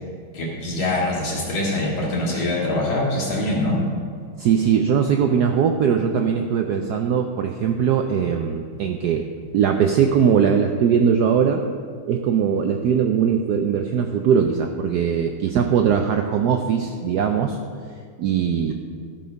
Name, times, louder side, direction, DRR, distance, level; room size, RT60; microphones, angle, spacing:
voice 1, 0.3-3.8, left 1 dB, 75° left, -4 dB, 2.9 m, -23 dB
voice 2, 4.4-9.2 9.5-11.6 12.1-17.6 18.2-18.7, right 7 dB, 80° right, 5 dB, 0.9 m, -20 dB
13.0 x 5.8 x 5.2 m, 2.1 s
omnidirectional pair, 2.3 m